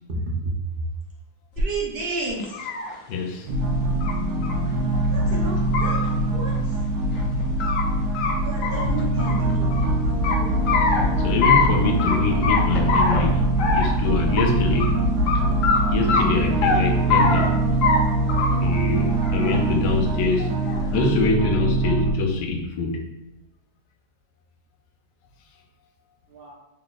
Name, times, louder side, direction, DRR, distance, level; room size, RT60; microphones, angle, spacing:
sound 1, 1.6-1.7 2.3-2.9 4.0-4.1 4.4-4.5 4.9-5.0 5.6-6.0 7.2-7.8 8.1-8.3 8.6-9.8 10.2-11.0 11.4-11.7 12.0-12.2 12.4-13.2 13.6-14.0 14.4-14.5 14.8-14.9 15.3-15.4 15.6-15.8 16.1-16.8 17.1-17.5 17.8-18.0 18.3-18.7 19.1-19.6 20.4-20.9, left 5 dB, 65° left, 0.8 m, -23 dB
voice 1, 1.6-2.5 5.1-6.0 6.3-6.5 8.4-9.9 26.3-26.5, right 2 dB, 50° right, -4 dB, 0.6 m, -31 dB
voice 2, 3.1-3.5 10.4-10.5 11.2-13.4 13.7-14.9 15.9-17.6 18.6-20.5 20.9-23.0, left 3 dB, 85° left, 3 dB, 1.3 m, -24 dB
sound 2, 3.5-22.1, right 2 dB, 80° right, 1.3 m, -23 dB
3.9 x 3.5 x 2.4 m, 0.91 s
omnidirectional pair, 1.9 m